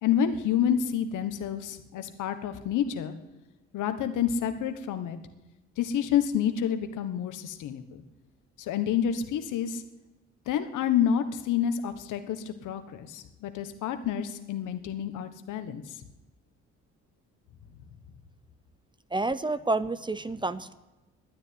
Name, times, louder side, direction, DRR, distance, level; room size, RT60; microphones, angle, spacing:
voice 1, 0.0-3.1 3.7-5.2 5.8-8.0 8.6-9.8 10.5-15.8, left 9 dB, 85° left, 9 dB, 1.3 m, -28 dB
voice 2, 19.1-20.7, right 2 dB, 15° right, 15 dB, 0.6 m, -29 dB
12.0 x 9.9 x 9.6 m, 1.1 s
cardioid pair, 90°, 30 cm